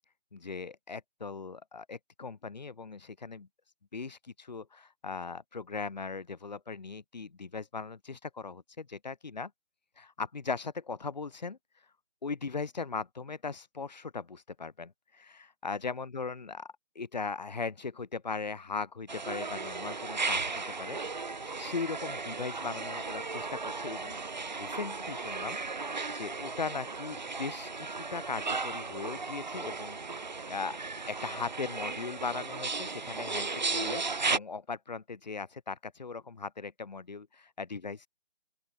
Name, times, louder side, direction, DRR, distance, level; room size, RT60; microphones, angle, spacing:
voice 1, 0.3-3.5 3.9-9.5 10.0-11.6 12.2-16.7 16.9-21.0 21.6-24.2 24.5-30.0 30.5-30.8 31.1-38.1, left 4 dB, 40° left, 2.4 m, -39 dB
sound 1, 19.1-34.4, right 4 dB, 45° right, 1.0 m, -35 dB
open air
hypercardioid pair, 180°, 33 cm